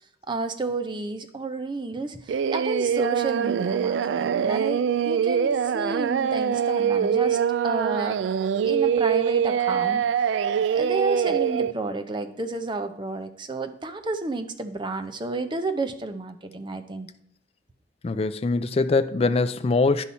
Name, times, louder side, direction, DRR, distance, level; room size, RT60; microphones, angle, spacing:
voice 1, 0.3-7.4 7.6-8.4 8.6-10.0 10.7-17.1, right 3 dB, 25° right, 0.6 m, -31 dB
Singing, 2.3-11.7, right 8 dB, 80° right, 0.3 m, -24 dB
voice 2, 18.0-20.0, left 3 dB, 35° left, 0.4 m, -23 dB
9.9 x 5.6 x 4.2 m
head